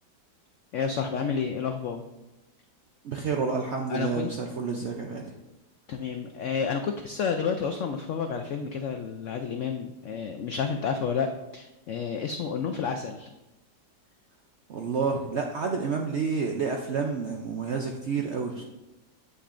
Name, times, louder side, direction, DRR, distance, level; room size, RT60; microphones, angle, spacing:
voice 1, 0.7-2.1 3.9-4.3 5.9-13.3, left 6 dB, 85° left, 6 dB, 0.6 m, -30 dB
voice 2, 3.0-5.3 14.7-18.6, right 5 dB, 70° right, 2 dB, 0.6 m, -29 dB
8.5 x 8.0 x 2.5 m, 1.0 s
omnidirectional pair, 1.8 m